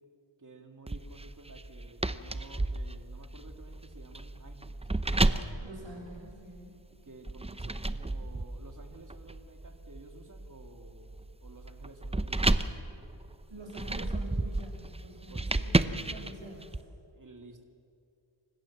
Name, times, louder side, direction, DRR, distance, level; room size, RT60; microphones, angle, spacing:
voice 1, 0.4-6.0 7.0-12.7 15.3-15.7 17.1-17.6, right 2 dB, 40° right, 5 dB, 2.2 m, -53 dB
sound 1, 0.9-6.7 7.3-16.8, right 2 dB, 15° right, 0.7 m, -32 dB
voice 2, 5.6-6.8 13.5-16.9, right 1 dB, 75° right, -1 dB, 6.5 m, -46 dB
28.0 x 15.5 x 7.2 m, 2.5 s
wide cardioid pair, 60°, 47 cm